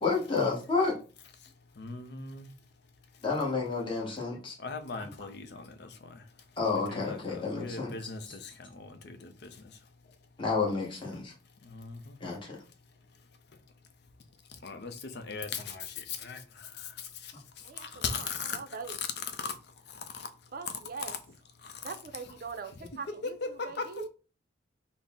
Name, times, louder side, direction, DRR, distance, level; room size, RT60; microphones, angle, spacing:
voice 1, 0.0-0.9 3.2-4.5 6.6-8.1 10.4-11.3 12.2-12.6, left 4 dB, 25° left, 1.0 m, -30 dB
voice 2, 1.8-2.5 4.6-6.2 6.7-9.5 11.6-12.2 14.6-16.9 17.2-17.3 17.8-18.6 18.9-19.0 19.4-19.5 20.0-20.3 21.1-21.2 21.6-22.0 23.1-24.1, left 4 dB, 60° left, 0.5 m, -39 dB
voice 3, 17.6-19.0 20.5-21.1 21.8-24.1, right 5 dB, 50° right, 0.5 m, -42 dB
4.0 x 2.0 x 3.5 m
head